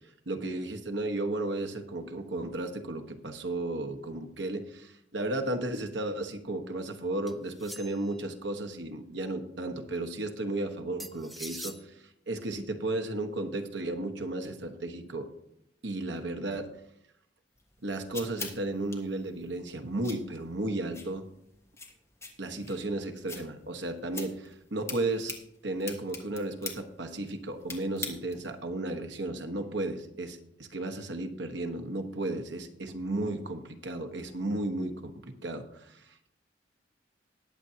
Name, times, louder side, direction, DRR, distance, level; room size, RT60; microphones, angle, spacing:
voice 1, 0.3-15.3 15.8-16.7 17.8-21.3 22.4-25.3 25.6-36.3, right 2 dB, 80° right, 6 dB, 1.3 m, -34 dB
sound 1, 7.3-8.2 11.0-11.8, equal, ahead, 0.4 m, -43 dB
sound 2, 17.6-28.6, left 4 dB, 15° left, 1.4 m, -45 dB
20.0 x 7.6 x 2.8 m, 0.78 s
head